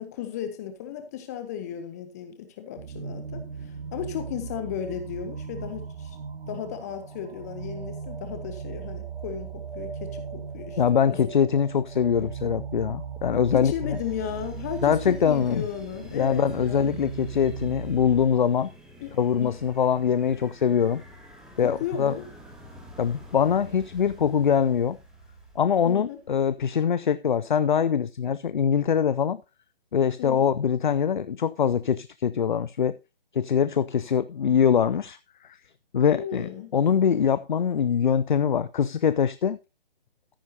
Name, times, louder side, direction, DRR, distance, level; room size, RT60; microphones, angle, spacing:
voice 1, 0.0-6.2 6.5-10.8 11.1-11.3 13.5-17.0 19.0-19.6 21.6-22.3 25.8-26.2 30.2-30.5 36.1-36.7, left 9 dB, 15° left, 0.8 m, -35 dB
sound 1, 2.8-18.3, right 6 dB, 65° right, 1.8 m, -38 dB
voice 2, 10.8-14.0 14.8-15.7 16.1-18.7 19.2-21.0 21.6-22.1 23.0-25.0 25.6-29.4 29.9-33.0 33.3-35.2 35.4-35.6 35.9-39.6, left 7 dB, 50° left, 0.6 m, -23 dB
sound 2, 13.9-26.3, left 1 dB, ahead, 1.8 m, -48 dB
14.0 x 10.0 x 2.8 m
figure-of-eight pair, 140°, 30 cm